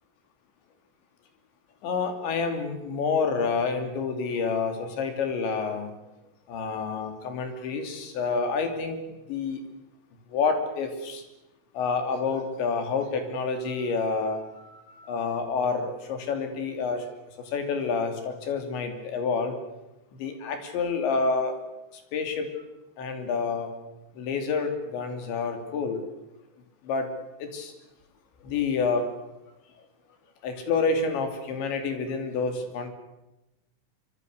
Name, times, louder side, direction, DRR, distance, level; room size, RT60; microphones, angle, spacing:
voice 1, 1.8-5.9 6.5-9.0 9.3-9.6 10.3-11.2 11.7-17.1 17.5-19.6 20.2-21.6 21.9-22.5 23.0-23.7 24.2-26.0 26.8-27.1 27.4-27.7 28.4-29.1 30.4-32.9, left 4 dB, 65° left, 6 dB, 5.0 m, -28 dB
26.0 x 25.0 x 6.6 m, 0.96 s
omnidirectional pair, 5.7 m